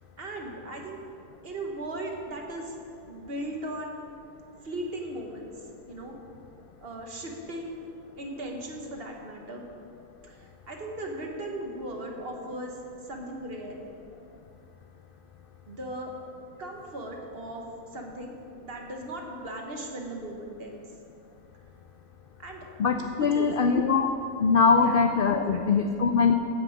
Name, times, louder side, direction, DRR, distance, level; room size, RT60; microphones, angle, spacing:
voice 1, 0.2-1.0 1.4-2.8 3.1-4.0 4.6-5.5 5.9-6.2 6.8-7.8 8.2-9.6 10.2-12.7 13.1-13.8 15.7-16.1 16.6-17.6 17.9-20.8 22.4-22.7 23.1-23.5 24.7-24.9 25.5-25.6, right 1 dB, 45° right, 1 dB, 1.4 m, -37 dB
voice 2, 22.8-24.1 24.4-26.3, left 5 dB, 70° left, 6 dB, 0.5 m, -22 dB
15.0 x 6.4 x 5.2 m, 2.5 s
omnidirectional pair, 1.5 m